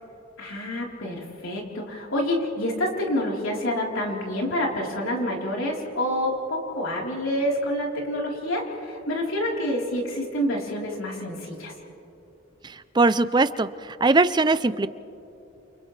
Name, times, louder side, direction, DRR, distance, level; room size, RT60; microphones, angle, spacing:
voice 1, 0.4-11.7, left 1 dB, 85° left, -2 dB, 3.9 m, -28 dB
voice 2, 12.6-14.9, right 3 dB, 20° right, 14 dB, 0.4 m, -21 dB
29.0 x 28.5 x 3.3 m, 2.9 s
head